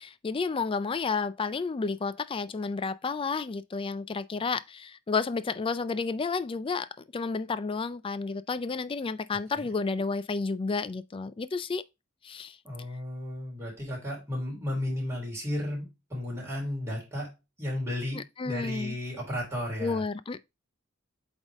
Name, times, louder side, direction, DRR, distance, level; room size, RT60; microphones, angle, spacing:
voice 1, 0.0-11.8 12.2-12.6 18.2-19.0 19.8-20.4, left 4 dB, 25° left, 0.4 m, -31 dB
voice 2, 12.6-17.3 17.6-20.0, left 1 dB, 15° right, 3.6 m, -34 dB
8.1 x 3.5 x 3.5 m
head